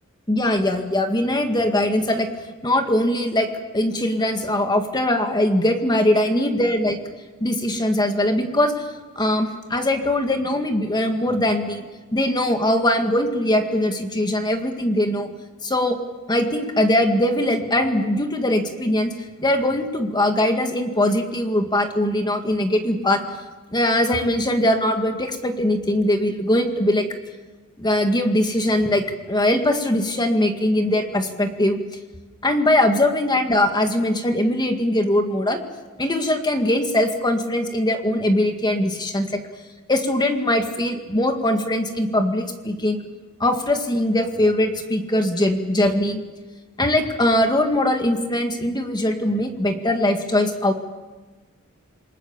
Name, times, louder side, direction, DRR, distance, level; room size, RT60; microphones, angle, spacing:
voice 1, 0.3-2.3 2.6-3.5 3.7-7.0 7.4-8.9 9.2-15.3 15.6-16.0 16.3-19.1 19.4-23.2 23.7-27.1 27.8-31.8 32.4-35.6 36.0-39.4 39.9-43.0 43.4-46.2 46.8-50.7, left 1 dB, 20° left, 5 dB, 2.0 m, -21 dB
28.0 x 20.0 x 7.3 m, 1.2 s
head